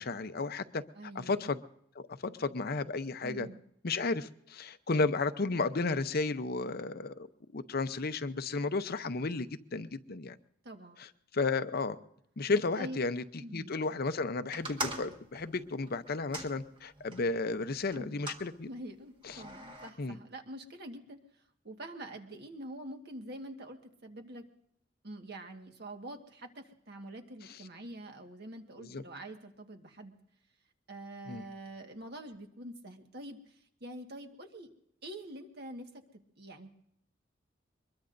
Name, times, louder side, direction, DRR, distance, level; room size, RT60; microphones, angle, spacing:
voice 1, 0.0-0.8 1.1-1.6 2.0-3.5 3.8-7.3 7.5-10.4 11.3-12.0 12.4-13.2 13.5-18.7 19.2-19.4 20.0-20.2 28.8-29.0 31.3-31.4, left 3 dB, 55° left, 0.7 m, -33 dB
voice 2, 0.9-1.4 3.2-3.6 10.6-11.0 12.8-13.0 13.4-13.8 17.9-18.2 18.7-21.2 21.6-24.5 25.0-30.1 30.9-34.7 35.0-36.0 36.4-36.7, right 1 dB, 55° right, 1.6 m, -45 dB
sound 1, 14.5-17.3 17.9-18.5 19.2-19.9, right 2 dB, 25° right, 1.7 m, -41 dB
23.5 x 21.5 x 2.6 m
head